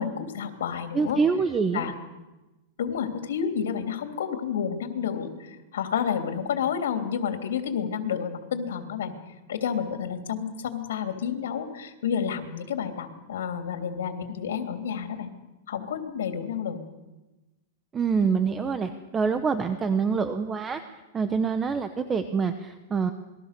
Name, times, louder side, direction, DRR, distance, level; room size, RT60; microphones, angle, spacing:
voice 1, 0.0-1.2 1.7-1.9 2.8-9.1 9.5-15.3 15.7-16.8, left 7 dB, 85° left, 5 dB, 3.1 m, -30 dB
voice 2, 0.9-1.9 17.9-20.8 21.1-23.1, right 5 dB, 15° right, 9 dB, 0.9 m, -26 dB
27.5 x 21.0 x 6.8 m, 1.1 s
supercardioid pair, 170°, 0 cm